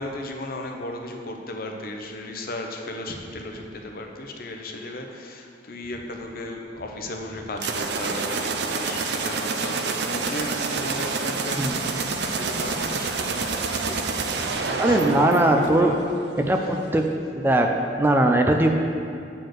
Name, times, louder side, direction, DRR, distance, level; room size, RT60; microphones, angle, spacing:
voice 1, 0.0-14.0 14.3-16.0 16.4-16.7, left 2 dB, 55° left, 2 dB, 0.8 m, -35 dB
sound 1, 7.6-16.2, right 4 dB, 65° right, 0.6 m, -28 dB
voice 2, 14.8-15.9 16.4-17.1 17.3-17.7 18.0-18.7, right 1 dB, 10° right, 3 dB, 0.4 m, -20 dB
8.2 x 4.4 x 6.4 m, 2.5 s
head